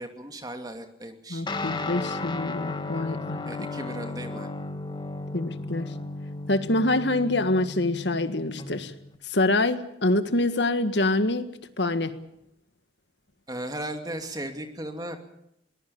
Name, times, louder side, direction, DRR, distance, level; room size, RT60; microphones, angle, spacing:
voice 1, 0.0-1.4 3.5-4.5 13.5-15.2, right 1 dB, 20° right, 6 dB, 2.5 m, -36 dB
voice 2, 1.3-3.5 5.3-5.9 6.5-8.9 9.2-11.5 11.8-12.1, left 2 dB, 70° left, 11 dB, 1.7 m, -25 dB
Guitar, 1.5-9.2, left 2 dB, 25° left, 1.7 m, -35 dB
22.5 x 20.0 x 7.1 m, 0.79 s
head